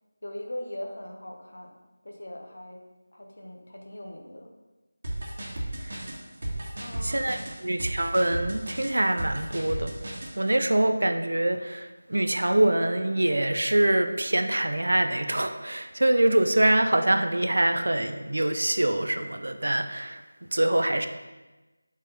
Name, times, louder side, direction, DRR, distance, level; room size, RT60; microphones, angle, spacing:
voice 1, 0.2-1.8 2.0-2.8 3.1-4.5 6.8-7.6, left 1 dB, 55° left, 1 dB, 1.3 m, -40 dB
sound 1, 5.0-10.3, right 1 dB, 40° right, 1.6 m, -34 dB
voice 2, 7.0-9.9 10.4-20.2 20.5-21.1, right 1 dB, 60° right, 7 dB, 0.6 m, -24 dB
8.3 x 4.2 x 5.4 m, 1.1 s
figure-of-eight pair, 165°, 0 cm